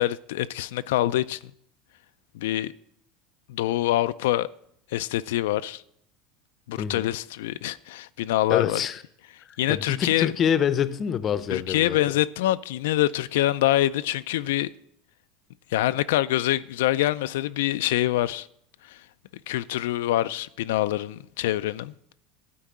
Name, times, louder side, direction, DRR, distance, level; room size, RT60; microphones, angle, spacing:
voice 1, 0.0-1.4 2.3-2.7 3.5-4.5 4.9-5.8 6.7-8.8 9.6-10.3 11.5-14.7 15.7-18.5 18.8-19.0 19.5-21.9, left 14 dB, 85° left, 0.3 m, -25 dB
voice 2, 8.5-9.0 9.7-12.0, left 8 dB, 30° left, 0.6 m, -26 dB
12.5 x 4.6 x 8.6 m
supercardioid pair, 140°, 0 cm